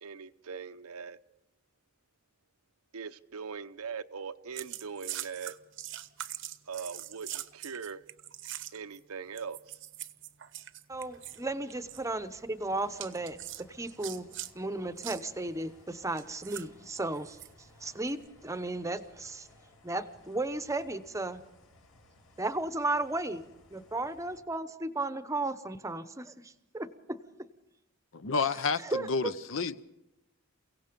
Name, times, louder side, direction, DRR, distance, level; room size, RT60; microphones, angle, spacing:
voice 1, 0.0-1.2 2.9-5.6 6.7-8.0 8.7-9.8, right 6 dB, 85° right, 0.8 m, -41 dB
sound 1, 4.6-9.0 9.4-11.4 11.7-12.0 13.0-14.5 15.0-15.2 16.2-17.5 18.1-18.3, right 13 dB, 60° right, 0.9 m, -42 dB
sound 2, 10.9-24.4, left 1 dB, 80° left, 6.8 m, -61 dB
voice 2, 10.9-13.4 13.7-14.2 14.5-17.4 17.8-19.5 19.8-21.4 22.4-23.4 23.7-27.2 28.8-29.3, right 2 dB, 15° right, 0.8 m, -34 dB
voice 3, 28.1-29.7, left 4 dB, 60° left, 0.8 m, -30 dB
29.5 x 17.0 x 5.2 m
head